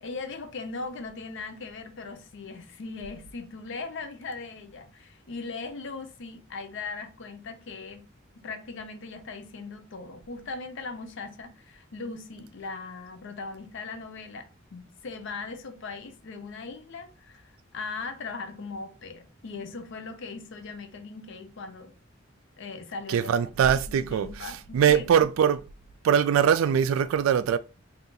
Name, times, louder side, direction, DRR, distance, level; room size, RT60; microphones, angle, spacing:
voice 1, 0.0-8.0 8.4-21.9 22.6-23.3 23.7-25.3, left 4 dB, 65° left, 0.6 m, -39 dB
voice 2, 23.1-24.3 24.7-25.6 26.0-27.6, right 8 dB, 80° right, 0.3 m, -22 dB
2.7 x 2.4 x 3.8 m
head